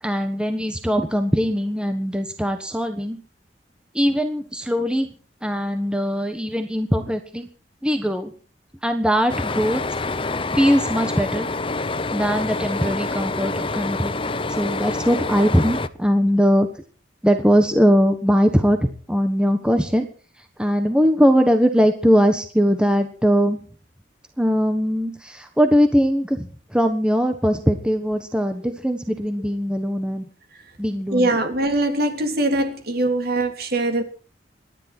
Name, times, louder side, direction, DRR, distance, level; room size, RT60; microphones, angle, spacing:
voice 1, 0.0-3.2 3.9-5.1 5.4-7.5 7.8-8.3 8.8-9.8 10.5-11.5 12.1-14.2 14.5-16.7 17.2-20.0 20.6-23.6 24.4-30.2 30.8-31.3, equal, 5° right, 1.3 m, -20 dB
sound 1, 9.3-15.9, left 3 dB, 30° left, 0.7 m, -27 dB
voice 2, 31.1-34.0, right 1 dB, 55° right, 3.3 m, -22 dB
26.5 x 10.5 x 4.4 m
head